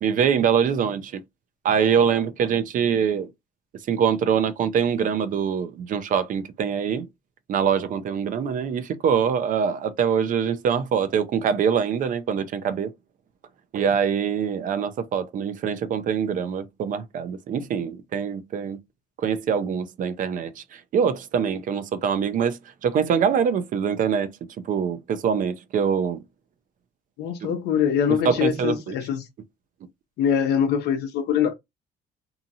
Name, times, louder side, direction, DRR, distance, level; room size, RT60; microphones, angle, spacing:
voice 1, 0.0-1.2 1.6-3.3 3.9-7.1 7.5-12.9 13.7-18.8 19.2-24.4 24.6-26.2 27.4-27.5 28.1-28.9, right 7 dB, 50° right, 0.5 m, -24 dB
voice 2, 27.2-29.2 30.2-31.5, left 8 dB, 75° left, 0.7 m, -23 dB
2.7 x 2.6 x 2.6 m
cardioid pair, 110°, 17 cm